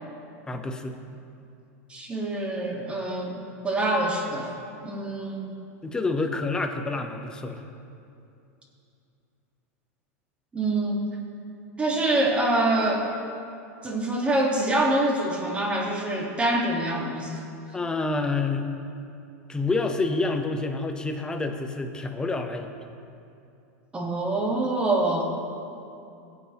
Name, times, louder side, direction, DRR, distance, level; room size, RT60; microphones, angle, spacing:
voice 1, 0.5-1.0 5.8-7.6 17.7-18.7 19.5-22.7, left 3 dB, 10° left, 5 dB, 0.7 m, -28 dB
voice 2, 1.9-3.4 3.6-4.5 4.8-5.5 10.5-11.1 11.8-13.0 13.8-17.4 23.9-25.2, right 1 dB, 15° right, -1 dB, 1.5 m, -25 dB
19.0 x 7.9 x 2.9 m, 2.6 s
supercardioid pair, 145°, 8 cm